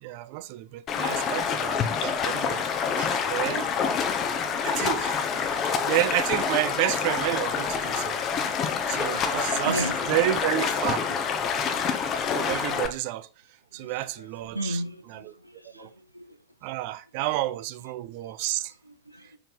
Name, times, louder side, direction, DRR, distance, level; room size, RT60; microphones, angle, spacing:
voice 1, 0.0-2.7 3.0-3.7 4.6-8.2 8.9-11.1 12.3-13.3 13.7-14.8 15.1-15.3 15.8-15.9 16.6-18.7, right 15 dB, 45° right, 0.4 m, -30 dB
Stream, 0.9-12.9, left 6 dB, 30° left, 0.8 m, -27 dB
voice 2, 9.1-10.0 13.7-13.9 14.2-16.4 17.2-17.3 18.9-19.4, equal, 90° right, 0.6 m, -36 dB
5.1 x 4.8 x 3.8 m
figure-of-eight pair, 90°, 0 cm